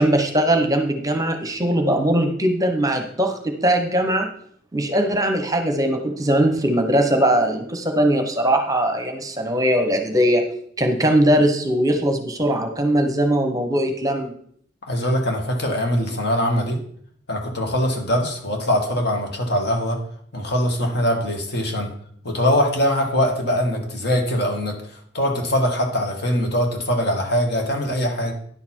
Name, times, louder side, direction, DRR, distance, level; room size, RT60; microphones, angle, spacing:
voice 1, 0.0-4.3 4.7-10.4 10.8-14.4, right 1 dB, 20° right, 5 dB, 1.0 m, -20 dB
voice 2, 14.9-16.8 17.3-20.0 20.3-21.9 22.2-28.3, equal, 60° left, 2 dB, 2.0 m, -22 dB
10.5 x 6.7 x 4.5 m, 0.63 s
head